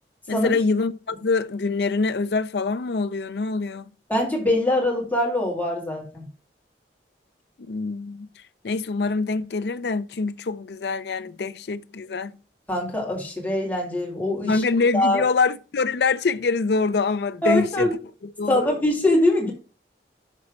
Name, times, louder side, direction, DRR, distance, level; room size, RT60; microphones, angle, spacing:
voice 1, 0.3-3.8 7.7-8.3 8.6-12.4 14.5-17.9 18.4-18.7, left 4 dB, 65° left, 0.5 m, -24 dB
voice 2, 4.1-6.2 12.7-14.6 14.9-15.2 17.4-17.9 18.5-19.5, left 1 dB, 10° left, 2.2 m, -23 dB
6.3 x 4.2 x 6.1 m
head